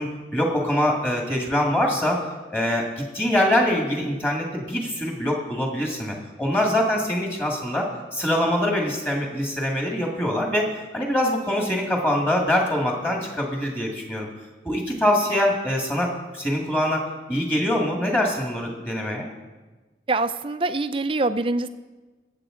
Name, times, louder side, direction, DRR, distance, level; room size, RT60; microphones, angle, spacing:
voice 1, 0.0-2.2 2.5-14.3 14.6-19.3, left 1 dB, 10° left, -1 dB, 1.9 m, -24 dB
voice 2, 20.1-21.7, right 2 dB, 30° right, 11 dB, 0.5 m, -24 dB
21.5 x 8.1 x 3.8 m, 1.2 s
head